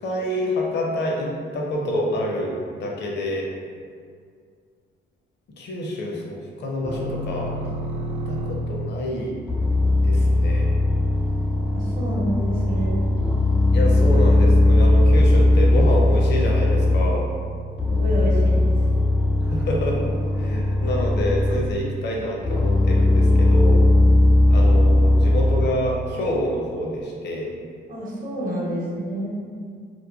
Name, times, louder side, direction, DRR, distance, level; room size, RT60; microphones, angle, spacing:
voice 1, 0.0-3.5 5.6-7.8 8.3-9.4 10.0-10.7 13.7-17.3 19.4-20.0 20.3-23.9 24.5-27.5, left 1 dB, 60° left, -2 dB, 0.6 m, -27 dB
sound 1, 6.8-8.9 9.5-17.4 17.8-21.9 22.4-25.7, left 1 dB, 5° right, 0.3 m, -19 dB
voice 2, 11.7-13.0 17.9-18.7 27.9-29.3, right 1 dB, 45° right, -5 dB, 0.8 m, -28 dB
3.0 x 2.1 x 2.3 m, 2.1 s
cardioid pair, 90°, 20 cm